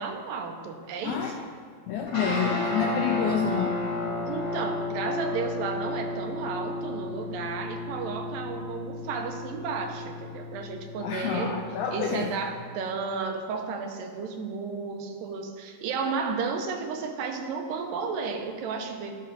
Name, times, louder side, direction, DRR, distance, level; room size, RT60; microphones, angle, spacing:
voice 1, 0.0-1.5 4.3-11.6 11.9-19.1, right 5 dB, 85° right, 4 dB, 2.4 m, -33 dB
voice 2, 1.0-1.4 1.9-3.8 11.0-12.3, left 7 dB, 80° left, 2 dB, 1.8 m, -28 dB
sound 1, 2.1-12.6, left 2 dB, 50° left, 3.5 m, -33 dB
12.5 x 5.6 x 3.9 m, 2.1 s
omnidirectional pair, 4.0 m